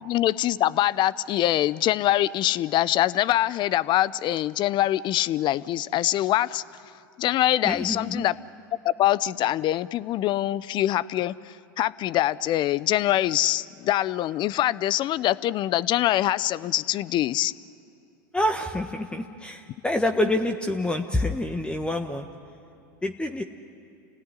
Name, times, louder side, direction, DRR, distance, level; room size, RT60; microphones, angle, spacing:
voice 1, 0.0-6.6 7.2-8.3 8.8-17.5, left 13 dB, 45° left, 19 dB, 0.7 m, -24 dB
voice 2, 7.6-8.2 18.3-22.3 23.0-23.4, left 1 dB, 10° left, 5 dB, 1.4 m, -27 dB
29.5 x 17.5 x 9.9 m, 2.6 s
hypercardioid pair, 95°, 11 cm